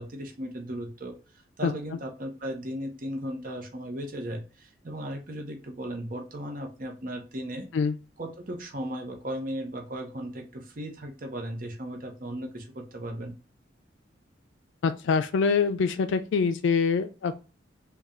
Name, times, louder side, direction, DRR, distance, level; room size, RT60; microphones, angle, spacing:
voice 1, 0.0-7.7 8.2-13.3, equal, 50° right, 0.7 m, -36 dB
voice 2, 14.8-17.3, left 5 dB, 80° left, 0.3 m, -24 dB
3.7 x 2.3 x 4.2 m
head